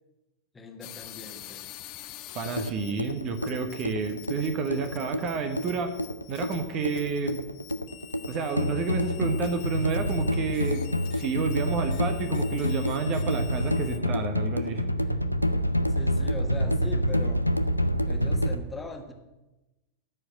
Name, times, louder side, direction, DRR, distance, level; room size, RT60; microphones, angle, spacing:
voice 1, 0.5-1.7 15.9-17.5 18.1-19.1, left 2 dB, 15° left, 3 dB, 1.5 m, -40 dB
sound 1, 0.8-14.0, left 14 dB, 45° left, 0.8 m, -47 dB
voice 2, 2.3-5.9 6.3-7.4 8.3-14.8, right 4 dB, 35° right, 7 dB, 1.2 m, -30 dB
sound 2, 2.4-18.6, equal, 90° left, 0.5 m, -27 dB
13.5 x 5.0 x 9.2 m, 1.0 s
figure-of-eight pair, 90°, 0 cm